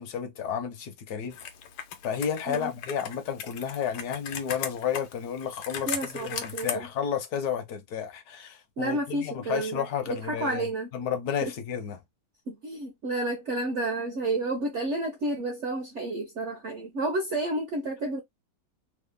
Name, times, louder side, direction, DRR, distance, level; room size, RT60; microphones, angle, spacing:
voice 1, 0.0-1.4 2.0-10.7 10.9-12.0, left 8 dB, 65° left, 1.1 m, -32 dB
Computer keyboard, 1.3-6.7, left 8 dB, 85° left, 1.4 m, -38 dB
voice 2, 5.9-6.9 8.8-10.9 11.4-11.5 12.5-18.2, right 2 dB, 65° right, 0.7 m, -31 dB
3.6 x 2.0 x 3.4 m
omnidirectional pair, 2.0 m